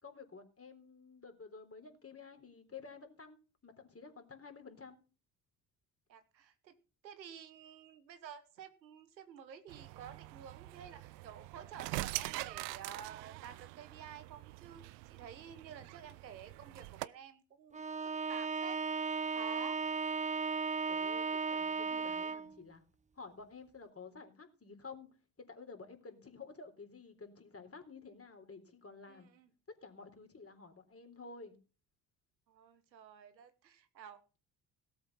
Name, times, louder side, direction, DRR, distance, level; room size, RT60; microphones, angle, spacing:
voice 1, 0.0-5.0 20.9-22.8 23.2-25.1 25.4-29.3 29.8-31.6, left 4 dB, 25° left, 6 dB, 3.8 m, -52 dB
voice 2, 6.1-6.7 7.0-18.8 19.3-19.8 21.0-21.1 29.1-29.5 32.5-34.2, right 8 dB, 90° right, 11 dB, 1.3 m, -51 dB
sound 1, 9.7-17.1, right 20 dB, 75° right, 0.7 m, -44 dB
Bowed string instrument, 17.7-22.6, right 5 dB, 15° right, 0.8 m, -36 dB
17.5 x 8.1 x 5.5 m, 0.36 s
hypercardioid pair, 50°, 50 cm